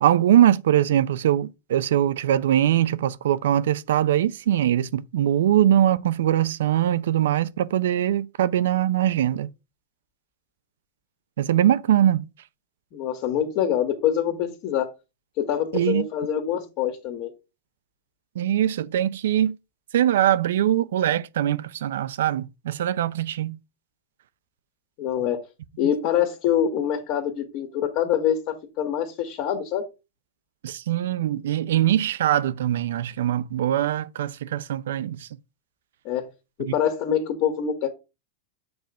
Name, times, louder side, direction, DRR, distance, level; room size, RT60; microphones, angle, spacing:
voice 1, 0.0-9.5 11.4-12.3 15.7-16.1 18.4-19.6 19.9-23.6 30.6-35.3 36.6-36.7, right 11 dB, 75° right, 0.6 m, -22 dB
voice 2, 12.9-14.9 15.4-17.3 25.0-25.4 25.8-29.8 36.1-36.3 36.6-37.9, left 9 dB, 45° left, 1.8 m, -25 dB
7.9 x 3.5 x 5.1 m
hypercardioid pair, 130°, 0 cm